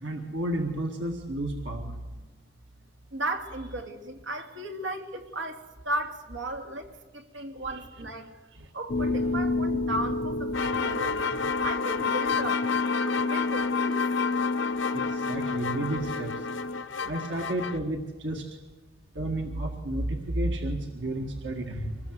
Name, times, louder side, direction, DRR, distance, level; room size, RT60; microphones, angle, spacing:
voice 1, 0.0-1.9 7.7-8.1 8.5-8.7 9.0-9.2 14.9-16.5 17.0-18.5 19.2-22.1, right 1 dB, 70° right, 2 dB, 1.9 m, -32 dB
voice 2, 3.1-8.3 8.7-11.2 11.6-12.7 13.0-14.0, right 1 dB, 90° right, 4 dB, 2.6 m, -35 dB
sound 1, 8.9-16.8, left 2 dB, 50° left, 0.6 m, -30 dB
sound 2, 10.5-17.8, left 6 dB, 90° left, 0.9 m, -31 dB
25.0 x 19.5 x 8.0 m, 1.3 s
head